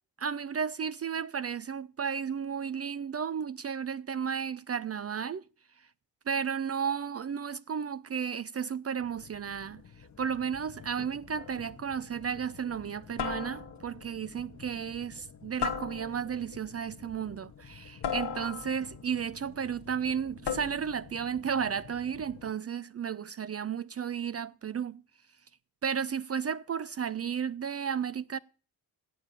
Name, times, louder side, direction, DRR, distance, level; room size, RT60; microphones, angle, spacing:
voice 1, 0.2-5.4 6.3-9.8 10.2-25.0 25.8-28.4, right 7 dB, 40° right, 0.5 m, -33 dB
sound 1, 9.0-22.5, left 7 dB, 45° left, 1.1 m, -51 dB
sound 2, 11.4-11.7 13.2-14.0 15.6-16.4 18.0-19.0 20.4-21.0, left 7 dB, 85° left, 1.2 m, -35 dB
9.4 x 7.3 x 8.3 m
cardioid pair, 60°, 39 cm